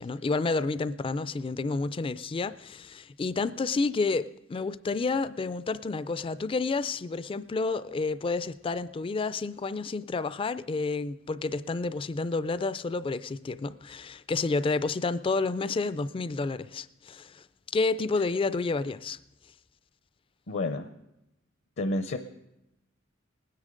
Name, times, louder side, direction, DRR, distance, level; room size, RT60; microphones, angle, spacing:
voice 1, 0.0-19.2, left 3 dB, 25° left, 0.3 m, -30 dB
voice 2, 20.5-20.9 21.8-22.2, left 2 dB, 60° left, 0.6 m, -29 dB
20.0 x 9.7 x 3.8 m
head